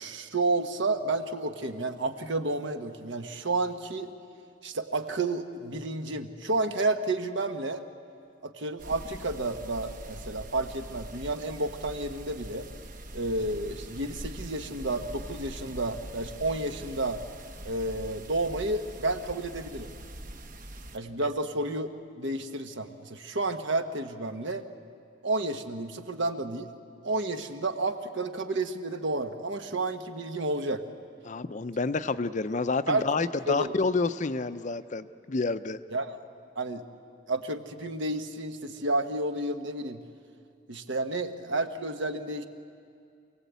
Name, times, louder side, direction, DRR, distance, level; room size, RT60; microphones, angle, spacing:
voice 1, 0.0-4.1 4.6-7.8 8.4-12.7 13.1-17.2 17.6-19.9 20.9-21.9 22.2-24.6 25.2-26.7 27.0-30.8 32.9-33.7 35.9-36.2 36.6-36.8 37.3-40.0 40.7-42.4, right 2 dB, 65° right, 7 dB, 1.3 m, -31 dB
sound 1, 8.8-21.0, right 1 dB, 45° right, 1.1 m, -43 dB
voice 2, 31.2-35.8, left 3 dB, 40° left, 12 dB, 0.5 m, -29 dB
27.5 x 17.5 x 8.2 m, 2.4 s
head